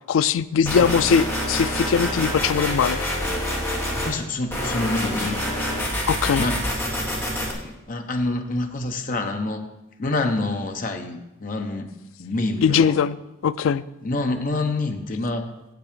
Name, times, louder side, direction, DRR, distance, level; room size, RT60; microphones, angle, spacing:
voice 1, 0.1-3.0 6.1-6.5 12.6-13.2 13.4-13.8, left 7 dB, 75° left, 16 dB, 0.3 m, -20 dB
sound 1, 0.7-4.1 4.5-7.5, equal, 10° left, 1.6 m, -26 dB
voice 2, 4.0-5.4 6.4-6.6 7.6-9.7 10.0-11.9 12.2-12.9 14.0-15.5, left 2 dB, 40° left, 5 dB, 0.8 m, -27 dB
8.1 x 5.9 x 6.7 m, 0.97 s
head